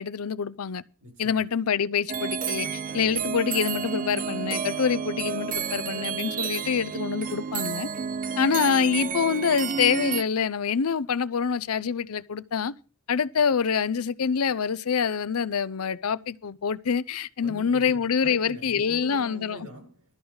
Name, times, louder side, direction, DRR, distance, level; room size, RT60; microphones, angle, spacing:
voice 1, 0.0-0.8 1.2-7.9 8.4-12.7 13.1-19.6, left 6 dB, 85° left, 0.6 m, -26 dB
voice 2, 1.0-1.5 2.9-3.3 8.0-8.3 17.4-20.2, equal, 90° right, 7.5 m, -44 dB
sound 1, 2.1-10.2, right 6 dB, 40° right, 0.5 m, -31 dB
13.0 x 4.7 x 8.8 m
head